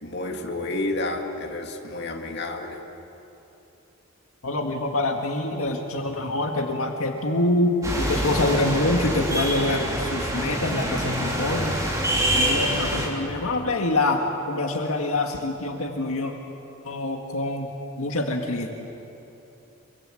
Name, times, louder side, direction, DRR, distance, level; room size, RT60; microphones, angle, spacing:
voice 1, 0.0-2.8, left 2 dB, 50° left, 2 dB, 2.3 m, -30 dB
voice 2, 4.4-11.8 12.3-16.3 16.8-17.7 18.0-18.7, left 2 dB, 75° left, 2 dB, 1.8 m, -25 dB
sound 1, 7.8-13.1, equal, 15° right, 3.7 m, -25 dB
26.0 x 25.0 x 7.7 m, 3.0 s
head